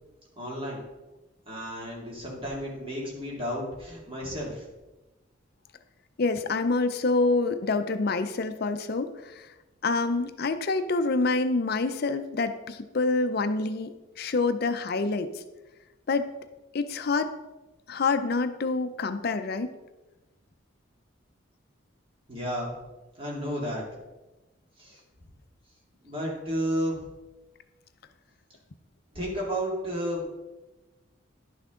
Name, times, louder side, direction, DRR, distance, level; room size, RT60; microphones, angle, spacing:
voice 1, 0.4-0.8 1.5-4.6 22.3-22.7 23.2-23.8 24.8-25.0 26.0-27.0 29.1-30.2, equal, 25° right, -3 dB, 2.2 m, -32 dB
voice 2, 6.2-9.5 9.8-15.4 16.1-16.3 16.7-17.4 17.9-19.7, left 3 dB, 50° left, 10 dB, 0.5 m, -27 dB
11.0 x 6.0 x 3.7 m, 1.1 s
head